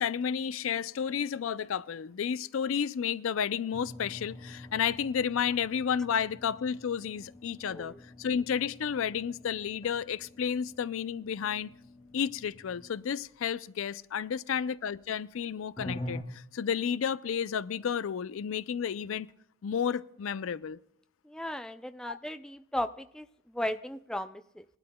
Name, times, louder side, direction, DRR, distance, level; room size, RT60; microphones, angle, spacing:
voice 1, 0.0-11.7 12.1-19.3 19.6-20.8 22.0-22.2, left 7 dB, 75° left, 0.4 m, -32 dB
sound 1, 3.7-13.2 15.8-16.2, left 1 dB, 25° left, 1.8 m, -46 dB
voice 2, 7.7-8.0 21.2-24.6, left 1 dB, 5° left, 0.3 m, -36 dB
20.0 x 12.0 x 2.2 m
head